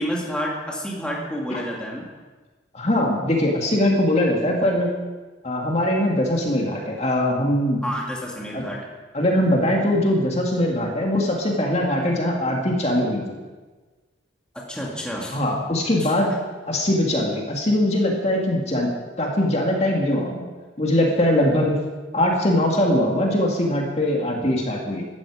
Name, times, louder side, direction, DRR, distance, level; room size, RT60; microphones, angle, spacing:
voice 1, 0.0-2.1 7.8-8.9 14.7-15.4 16.0-16.1, equal, 5° left, -3 dB, 2.4 m, -29 dB
voice 2, 2.7-4.9 5.4-7.8 8.5-8.7 9.1-13.4 15.3-16.3 16.7-18.9 19.2-20.4 20.8-21.8 22.1-25.1, left 1 dB, 35° left, -1 dB, 2.3 m, -21 dB
17.0 x 13.0 x 5.0 m, 1.3 s
head